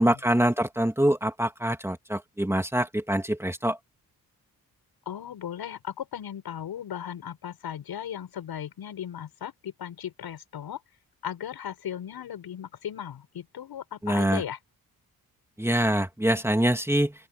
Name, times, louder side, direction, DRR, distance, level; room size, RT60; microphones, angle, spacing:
voice 1, 0.0-3.8 14.0-14.4 15.6-17.1, right 1 dB, 5° right, 2.9 m, -24 dB
voice 2, 5.1-10.8 11.2-14.6, left 9 dB, 80° left, 8.0 m, -37 dB
open air
cardioid pair, 65°, 37 cm